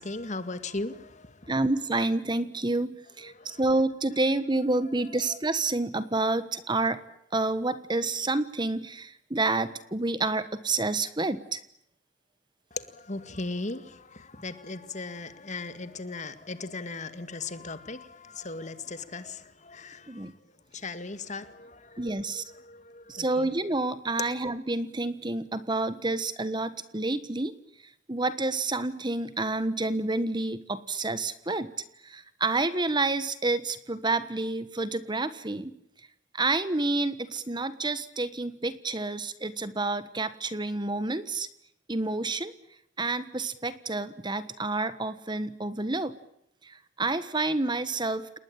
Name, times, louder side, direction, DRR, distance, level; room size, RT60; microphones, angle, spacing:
voice 1, 0.0-1.5 3.2-3.6 12.7-20.3 20.7-23.5, left 3 dB, 40° left, 12 dB, 2.0 m, -38 dB
voice 2, 1.5-7.0 7.3-11.6 20.1-20.3 22.0-22.4 23.1-27.5 28.1-31.7 32.0-35.7 36.3-41.5 41.9-42.5 43.0-46.2 46.6-48.4, right 2 dB, 25° right, 14 dB, 1.4 m, -29 dB
30.0 x 20.0 x 8.8 m, 0.75 s
head